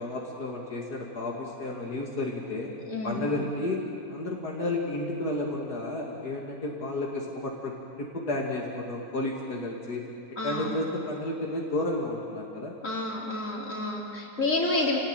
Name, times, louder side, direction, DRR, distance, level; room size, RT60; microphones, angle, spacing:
voice 1, 0.0-2.7 3.0-3.8 4.1-7.7 8.0-10.1 10.4-12.7, left 2 dB, 85° left, -2 dB, 3.0 m, -32 dB
voice 2, 2.9-3.2 10.4-10.7 12.8-15.0, left 2 dB, 55° left, -2 dB, 4.2 m, -29 dB
29.0 x 18.5 x 9.1 m, 2.7 s
omnidirectional pair, 1.6 m